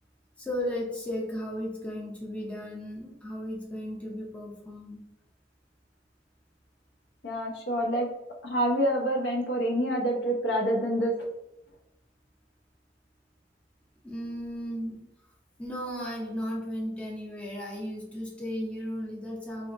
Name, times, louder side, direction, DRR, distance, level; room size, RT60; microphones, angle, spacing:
voice 1, 0.4-5.0 14.0-15.0 15.6-19.7, equal, 5° left, -4 dB, 0.5 m, -35 dB
voice 2, 7.2-8.1 8.4-11.1, equal, 75° left, 0 dB, 0.6 m, -27 dB
2.7 x 2.4 x 2.5 m, 0.87 s
head